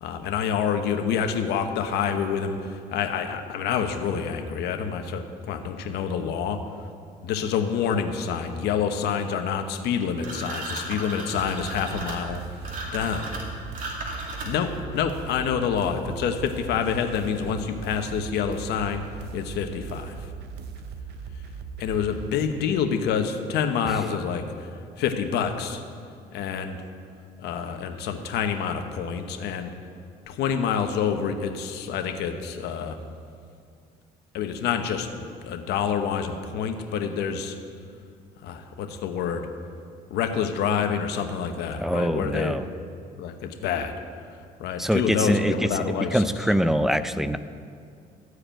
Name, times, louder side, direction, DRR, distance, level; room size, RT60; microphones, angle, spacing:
voice 1, 0.0-6.6 7.2-12.4 12.9-13.3 14.4-19.0 19.3-20.2 21.8-24.7 25.0-25.8 26.3-26.8 27.4-29.7 30.3-33.0 34.3-37.5 38.4-39.5 40.1-42.6 43.2-43.9 44.6-46.2, left 7 dB, 80° left, 6 dB, 1.0 m, -27 dB
sound 1, 10.2-14.8, right 1 dB, 50° right, 2.4 m, -35 dB
sound 2, 11.3-22.3, right 5 dB, 75° right, 0.8 m, -39 dB
voice 2, 41.8-42.6 44.8-45.8 46.1-47.4, equal, ahead, 11 dB, 0.4 m, -24 dB
14.0 x 4.8 x 8.9 m, 2.3 s
cardioid pair, 110°, 17 cm